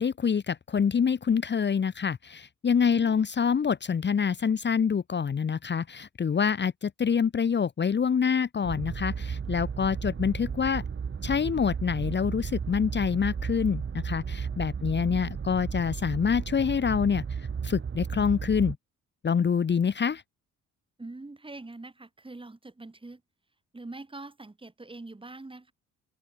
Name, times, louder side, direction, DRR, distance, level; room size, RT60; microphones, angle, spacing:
voice 1, 0.0-10.8 11.2-18.8 19.2-20.2, left 6 dB, 35° left, 1.4 m, -26 dB
voice 2, 2.9-3.2 14.8-15.3 21.0-23.2 23.7-25.7, right 2 dB, 15° right, 6.7 m, -44 dB
sound 1, 8.6-18.8, right 6 dB, 40° right, 5.1 m, -34 dB
open air
cardioid pair, 90°, 30 cm